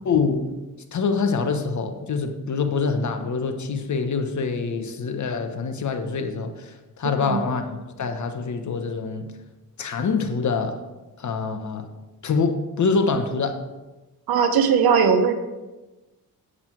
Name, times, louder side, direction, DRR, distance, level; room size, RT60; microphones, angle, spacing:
voice 1, 0.0-0.5 0.9-6.5 7.0-9.3 9.8-10.8 11.2-11.9 12.2-13.6, left 4 dB, 50° left, 1.2 m, -25 dB
voice 2, 14.3-15.3, right 6 dB, 80° right, 1.1 m, -19 dB
8.6 x 7.5 x 4.7 m
cardioid pair, 75°, 36 cm